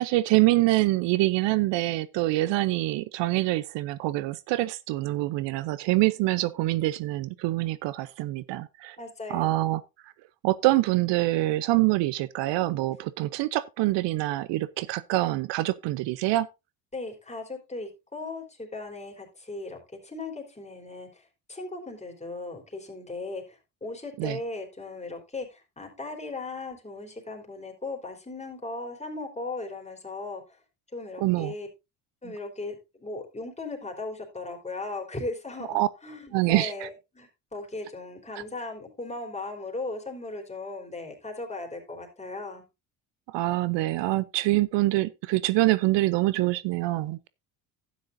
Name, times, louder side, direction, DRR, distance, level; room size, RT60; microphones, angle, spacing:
voice 1, 0.0-9.0 9.3-9.8 10.4-16.5 24.2-24.4 31.2-31.5 35.7-35.9 36.3-36.9 43.3-47.3, right 18 dB, 65° right, 0.7 m, -25 dB
voice 2, 9.0-9.6 16.9-30.6 30.9-31.7 32.2-42.6, left 2 dB, 15° left, 3.6 m, -37 dB
11.5 x 9.5 x 2.6 m
supercardioid pair, 75°, 46 cm